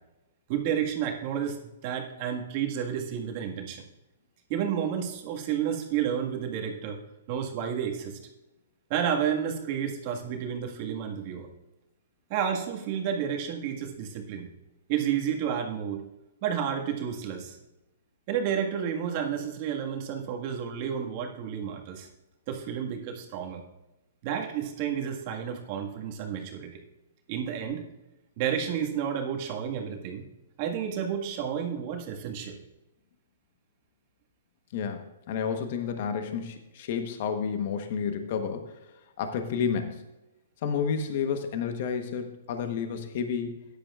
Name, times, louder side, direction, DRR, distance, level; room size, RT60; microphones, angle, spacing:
voice 1, 0.5-3.8 4.5-7.0 7.3-8.2 8.9-11.5 12.3-14.5 14.9-16.1 16.4-17.6 18.3-22.1 22.5-23.6 24.2-26.8 27.3-27.8 28.4-30.3 30.6-32.6, right 8 dB, 40° right, 1 dB, 1.7 m, -31 dB
voice 2, 34.7-38.7 39.2-40.0 40.6-43.6, left 6 dB, 55° left, 7 dB, 1.1 m, -30 dB
14.0 x 10.5 x 2.4 m, 0.98 s
hypercardioid pair, 135°, 0 cm